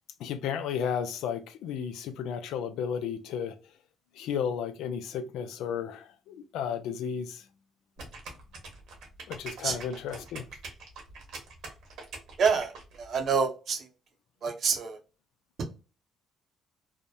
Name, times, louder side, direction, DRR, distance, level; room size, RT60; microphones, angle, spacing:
voice 1, 0.2-3.6 4.2-7.4 9.3-10.5, left 7 dB, 85° left, 0.4 m, -33 dB
sound 1, 8.0-13.3, right 3 dB, 75° right, 1.0 m, -44 dB
voice 2, 12.4-12.7 13.0-13.8 14.4-15.0 15.6-15.7, right 5 dB, 60° right, 0.6 m, -26 dB
2.7 x 2.1 x 2.2 m
cardioid pair, 85°, 0 cm